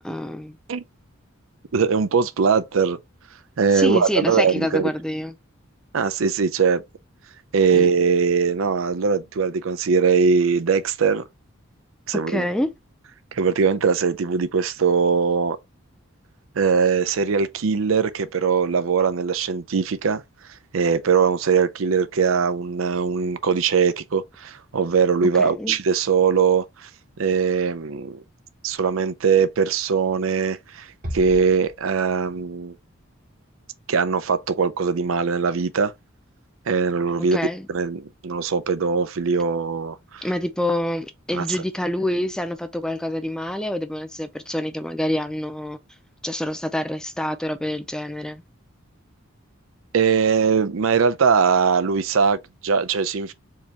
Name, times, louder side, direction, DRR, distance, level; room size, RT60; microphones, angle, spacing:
voice 1, 0.0-0.6 3.7-5.3 7.7-7.9 12.1-12.7 25.4-25.8 37.3-37.7 40.2-45.8 46.2-48.4, left 1 dB, 5° left, 0.4 m, -27 dB
voice 2, 1.7-3.0 3.6-4.9 5.9-6.8 7.5-11.2 12.1-12.5 13.3-15.6 16.6-20.2 20.7-26.9 27.2-28.2 28.6-30.9 31.1-32.8 33.9-35.9 36.7-37.4 37.7-40.3 41.3-41.4 49.9-53.3, right 5 dB, 75° right, 0.5 m, -21 dB
Bass drum, 31.0-32.4, equal, 40° right, 1.5 m, -36 dB
4.6 x 2.9 x 3.2 m
head